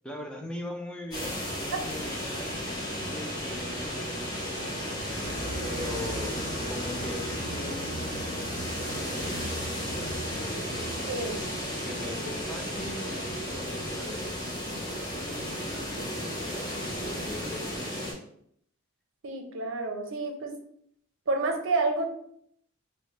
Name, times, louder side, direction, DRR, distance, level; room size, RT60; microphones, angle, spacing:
voice 1, 0.0-2.7 3.1-6.4 6.7-10.9 11.7-18.2, left 1 dB, 5° left, 1 dB, 0.3 m, -42 dB
sound 1, 1.1-18.1, equal, 20° left, 1.0 m, -34 dB
sound 2, 5.2-11.4, right 1 dB, 80° left, 0.9 m, -39 dB
voice 2, 11.1-11.4 19.2-20.5 21.3-22.1, right 3 dB, 65° right, 4 dB, 0.6 m, -29 dB
3.6 x 2.1 x 3.1 m, 0.68 s
head